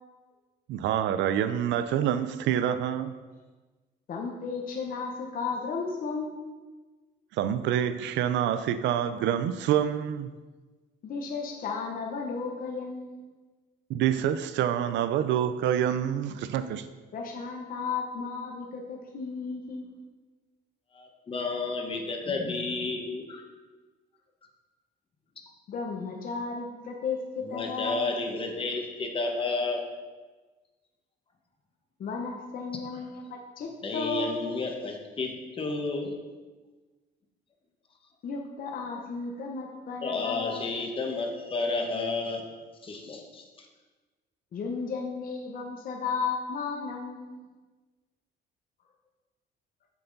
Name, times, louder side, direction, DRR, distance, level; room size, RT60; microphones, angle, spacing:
voice 1, 0.7-3.1 7.4-10.3 13.9-16.8, right 10 dB, 85° right, 11 dB, 0.5 m, -27 dB
voice 2, 4.1-6.4 11.0-13.3 17.1-19.9 25.7-28.1 32.0-34.5 38.2-40.6 44.5-47.4, left 4 dB, 50° left, 0 dB, 1.0 m, -34 dB
voice 3, 20.9-23.4 27.4-29.8 33.6-36.1 40.0-42.5 42.8-43.7, left 3 dB, 30° left, 2 dB, 1.2 m, -31 dB
7.0 x 6.9 x 4.0 m, 1.3 s
cardioid pair, 130°, 18 cm